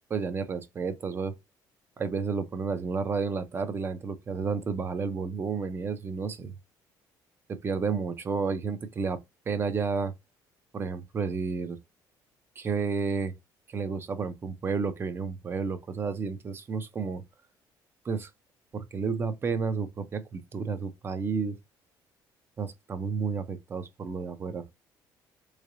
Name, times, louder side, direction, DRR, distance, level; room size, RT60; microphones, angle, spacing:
voice 1, 0.1-1.4 2.0-6.5 7.5-9.2 9.5-10.1 10.7-11.8 12.6-13.3 13.7-17.2 18.0-18.3 18.7-21.6 22.6-24.6, right 5 dB, 30° right, 0.6 m, -31 dB
3.7 x 3.2 x 2.6 m
cardioid pair, 130°, 8 cm